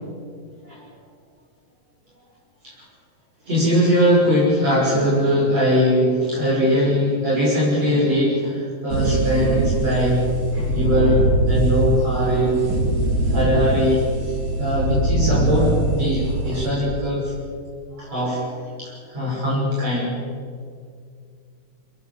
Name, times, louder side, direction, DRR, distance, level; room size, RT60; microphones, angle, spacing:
voice 1, 3.5-10.2 10.5-12.6 13.3-17.3 18.0-18.5 18.8-20.2, equal, 45° right, -6 dB, 7.3 m, -21 dB
sound 1, 8.9-16.7, right 2 dB, 70° right, 5.1 m, -22 dB
25.0 x 21.0 x 7.6 m, 2.2 s
omnidirectional pair, 4.2 m